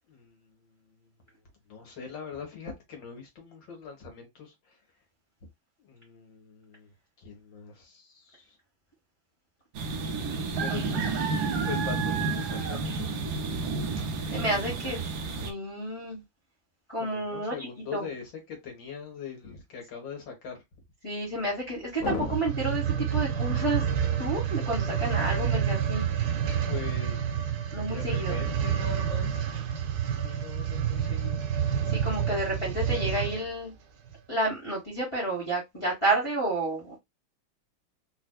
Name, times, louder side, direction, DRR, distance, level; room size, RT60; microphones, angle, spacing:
voice 1, 0.1-1.1 1.7-4.8 5.8-6.9 7.2-8.6 10.6-11.0 11.6-13.3 14.5-15.0 17.0-20.6 22.0-22.3 26.7-29.5 30.1-31.5, left 6 dB, 65° left, 2.0 m, -41 dB
sound 1, 9.7-15.5, right 4 dB, 65° right, 1.1 m, -30 dB
voice 2, 10.5-11.1 14.3-15.0 15.4-16.2 16.9-17.5 17.9-18.0 21.0-23.8 24.2-26.1 27.7-28.4 31.9-33.7 34.3-37.0, right 1 dB, 15° left, 1.3 m, -30 dB
sound 2, 22.2-33.5 34.1-34.2, right 8 dB, 85° right, 1.6 m, -28 dB
4.1 x 2.5 x 2.2 m
omnidirectional pair, 2.2 m